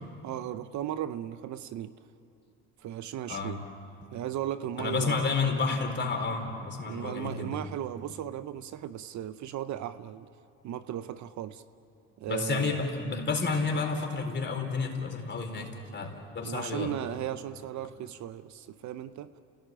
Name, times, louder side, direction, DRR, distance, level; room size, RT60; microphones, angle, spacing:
voice 1, 0.2-1.9 2.8-3.6 4.1-5.3 6.8-10.3 10.6-11.6 12.2-12.8 16.4-19.3, right 11 dB, 55° right, 13 dB, 0.8 m, -36 dB
voice 2, 4.8-7.6 12.3-16.9, left 4 dB, 30° left, 3 dB, 4.3 m, -30 dB
30.0 x 17.5 x 9.0 m, 2.6 s
supercardioid pair, 95°, 35 cm